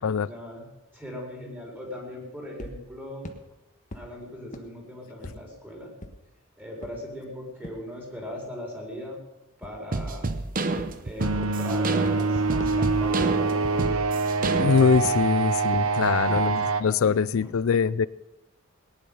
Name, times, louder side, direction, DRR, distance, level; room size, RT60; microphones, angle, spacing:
voice 1, 0.2-0.6 0.9-3.3 3.9-5.9 6.6-9.2 9.6-10.3 11.0-13.9 16.0-16.6 17.0-17.6, left 1 dB, 10° right, 4.7 m, -39 dB
sound 1, 2.6-2.7 3.2-3.3 3.9-4.0 4.5-4.6 5.2-5.3 6.0-6.1 6.8-6.9 7.6-7.7 9.6-9.7 10.8-10.9 11.4-11.5 12.0-12.1 12.6-12.7 13.2-13.3 13.8-13.9 14.4-14.5 15.0-15.1 15.7-15.8 16.4-16.5, left 1 dB, 35° left, 1.3 m, -37 dB
sound 2, 9.9-15.1, right 3 dB, 40° right, 0.9 m, -29 dB
sound 3, 11.2-16.8, right 4 dB, 90° right, 1.1 m, -25 dB
voice 2, 14.6-18.1, left 6 dB, 70° left, 0.4 m, -23 dB
19.0 x 10.5 x 5.7 m
head